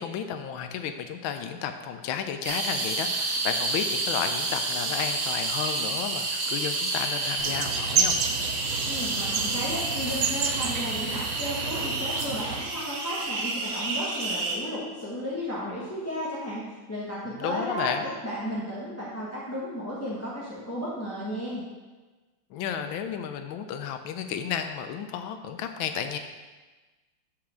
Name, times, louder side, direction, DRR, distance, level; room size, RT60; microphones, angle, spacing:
voice 1, 0.0-8.1 17.2-18.1 22.5-26.2, left 8 dB, 80° left, 8 dB, 1.3 m, -32 dB
sound 1, 2.4-14.6, right 2 dB, 50° right, 0.8 m, -30 dB
sound 2, 7.4-12.6, right 6 dB, 85° right, 0.8 m, -30 dB
voice 2, 8.9-16.6 16.9-21.7, equal, 10° left, -8 dB, 0.8 m, -34 dB
5.8 x 4.9 x 6.2 m, 1.3 s
omnidirectional pair, 2.3 m